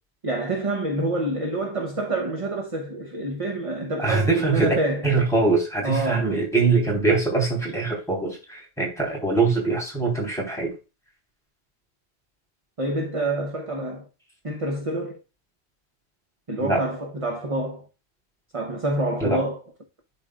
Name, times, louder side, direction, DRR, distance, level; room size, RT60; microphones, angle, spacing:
voice 1, 0.2-5.1 5.8-6.4 12.8-14.1 14.4-15.2 16.5-17.9 18.5-19.6, right 2 dB, 30° right, 0.9 m, -27 dB
voice 2, 4.0-4.7 5.0-10.8 16.6-16.8 19.2-19.4, right 3 dB, 5° left, 3.5 m, -23 dB
11.0 x 4.3 x 2.4 m
omnidirectional pair, 1.1 m